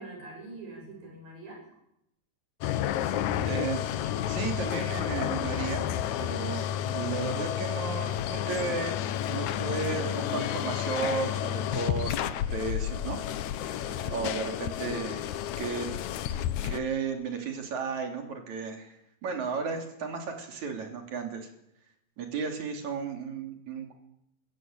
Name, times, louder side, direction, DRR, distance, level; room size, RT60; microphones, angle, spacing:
voice 1, 0.0-1.6 13.8-14.2, right 2 dB, 70° right, 0 dB, 9.4 m, -44 dB
sound 1, 2.6-16.8, left 11 dB, 70° left, 2.0 m, -31 dB
voice 2, 3.4-9.0 9.3-13.2 13.6-16.0 16.6-21.5 22.2-23.9, right 5 dB, 55° right, 4 dB, 4.2 m, -34 dB
23.0 x 15.5 x 8.8 m, 0.79 s
omnidirectional pair, 4.2 m